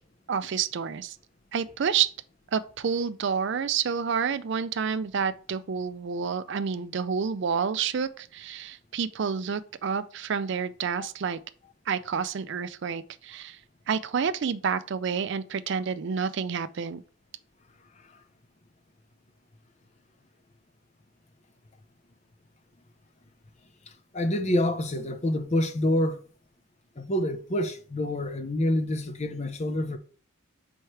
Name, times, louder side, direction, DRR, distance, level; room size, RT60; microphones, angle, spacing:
voice 1, 0.3-1.2 1.5-2.1 2.5-11.4 11.9-13.6 13.9-17.0, right 6 dB, 55° right, 0.4 m, -29 dB
voice 2, 23.9-26.2 27.0-30.0, left 1 dB, 30° left, 0.6 m, -27 dB
4.8 x 4.4 x 4.6 m
head